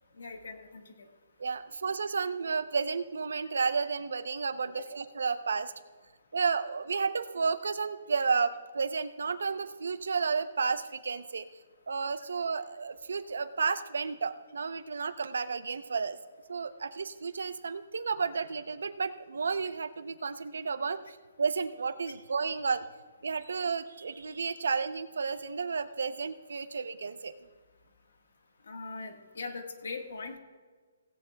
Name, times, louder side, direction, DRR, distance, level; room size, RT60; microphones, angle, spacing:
voice 1, 0.2-1.1 28.7-30.4, left 4 dB, 75° left, 4 dB, 1.6 m, -41 dB
voice 2, 1.4-5.7 6.3-11.5 11.9-16.2 16.5-22.8 23.2-27.3, right 5 dB, 85° right, 11 dB, 0.7 m, -32 dB
16.5 x 16.0 x 2.3 m, 1.5 s
hypercardioid pair, 175°, 0 cm